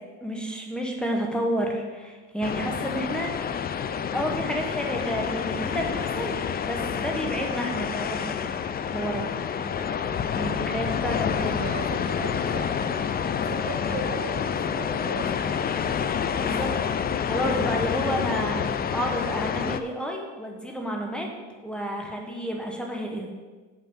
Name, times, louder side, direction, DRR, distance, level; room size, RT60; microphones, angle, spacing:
voice 1, 0.2-3.6 4.1-8.5 8.9-9.3 10.3-11.6 16.3-21.3 21.6-23.3, equal, 5° left, 0 dB, 1.4 m, -30 dB
sound 1, 2.4-19.8, left 7 dB, 30° left, 0.4 m, -28 dB
voice 2, 10.7-15.7, right 4 dB, 50° right, 1 dB, 1.7 m, -39 dB
7.1 x 5.8 x 5.6 m, 1.3 s
cardioid pair, 105°, 29 cm